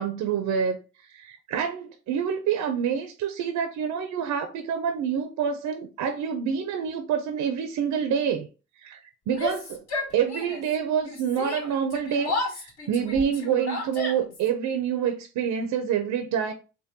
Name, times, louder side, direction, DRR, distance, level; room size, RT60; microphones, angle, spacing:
voice 1, 0.0-8.5 8.8-9.8 10.1-16.5, right 7 dB, 75° right, 0.5 m, -27 dB
Yell, 9.3-10.7 11.0-14.5, left 3 dB, 60° left, 1.8 m, -33 dB
3.5 x 2.2 x 2.7 m
cardioid pair, 90°, 30 cm